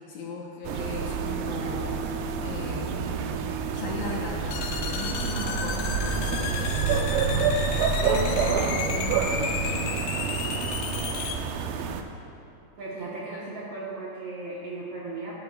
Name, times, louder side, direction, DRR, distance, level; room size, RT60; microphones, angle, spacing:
voice 1, 0.1-2.1 2.4-3.0 3.7-7.5 8.0-10.0, left 3 dB, 70° left, -2 dB, 2.1 m, -37 dB
sound 1, 0.6-12.0, right 5 dB, 85° right, 2.3 m, -28 dB
sound 2, 4.5-11.4, left 6 dB, 90° left, 2.5 m, -33 dB
voice 2, 12.8-15.3, right 3 dB, 65° right, -6 dB, 1.6 m, -36 dB
13.0 x 11.5 x 2.3 m, 2.7 s
omnidirectional pair, 4.1 m